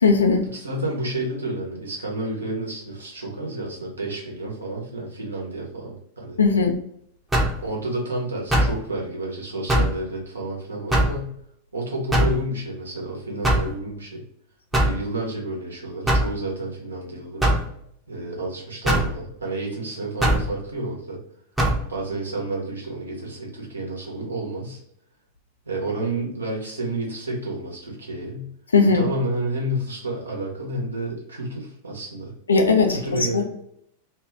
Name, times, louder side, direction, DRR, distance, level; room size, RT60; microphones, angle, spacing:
voice 1, 0.0-0.4 6.4-6.7 28.7-29.0 32.5-33.4, left 4 dB, 75° left, 4 dB, 0.4 m, -18 dB
voice 2, 0.5-6.4 7.6-11.3 11.7-14.2 14.7-17.4 18.1-21.2 21.9-24.8 25.6-28.5 28.8-32.3 32.9-33.4, right 1 dB, 75° right, -2 dB, 0.9 m, -30 dB
sound 1, 7.3-7.6 8.5-8.8 9.7-10.0 10.9-11.2 12.1-12.4 13.4-13.7 14.7-15.0 16.1-16.3 17.4-17.7 18.9-19.1 20.2-20.5 21.6-21.8, right 1 dB, 10° right, 0.7 m, -20 dB
2.5 x 2.3 x 3.3 m, 0.71 s
figure-of-eight pair, 90°, 0 cm